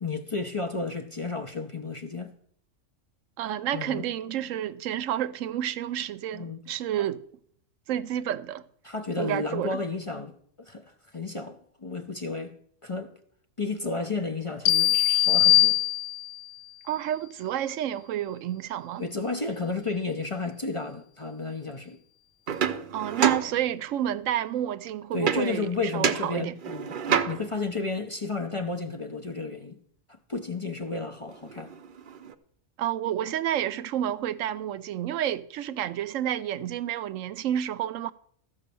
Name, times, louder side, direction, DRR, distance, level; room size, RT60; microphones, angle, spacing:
voice 1, 0.0-2.3 3.7-4.1 6.3-6.6 7.0-7.1 8.8-12.6 12.8-13.1 13.6-15.8 19.0-22.0 25.1-29.8 30.3-31.7, left 3 dB, 30° left, 0.6 m, -32 dB
voice 2, 3.4-7.2 7.9-8.6 9.2-9.8 16.8-19.0 22.9-26.6 32.8-38.1, right 11 dB, 85° right, 1.0 m, -30 dB
sound 1, 14.7-16.5, left 14 dB, 70° left, 0.9 m, -21 dB
sound 2, 22.5-24.1 25.3-25.7 26.0-27.7 30.9-31.0 31.3-32.3, right 8 dB, 50° right, 0.7 m, -29 dB
14.0 x 5.4 x 6.9 m
omnidirectional pair, 1.3 m